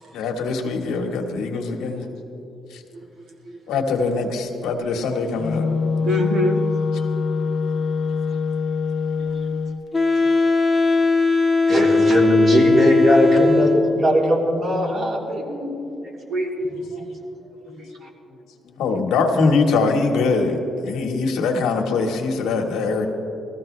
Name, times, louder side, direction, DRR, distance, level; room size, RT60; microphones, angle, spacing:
voice 1, 0.1-2.1 2.7-2.8 3.7-5.6 8.3-8.4 17.0-17.1 18.6-23.1, left 4 dB, 90° left, 2 dB, 1.4 m, -22 dB
Wind instrument woodwind instrument, 5.3-9.8, left 4 dB, 55° left, 0.6 m, -24 dB
voice 2, 6.0-6.6 9.2-9.5 10.2-10.4 10.9-11.0 17.7-17.9, left 2 dB, 70° right, 1 dB, 1.8 m, -27 dB
Wind instrument woodwind instrument 2, 9.9-14.0, left 3 dB, 20° left, 1.1 m, -18 dB
voice 3, 11.7-15.8 16.2-16.5 16.9-17.0 17.4-17.5 18.0-18.1, right 1 dB, 50° right, -3 dB, 3.3 m, -20 dB
19.5 x 14.5 x 3.3 m, 2.9 s
cardioid pair, 90°, 0 cm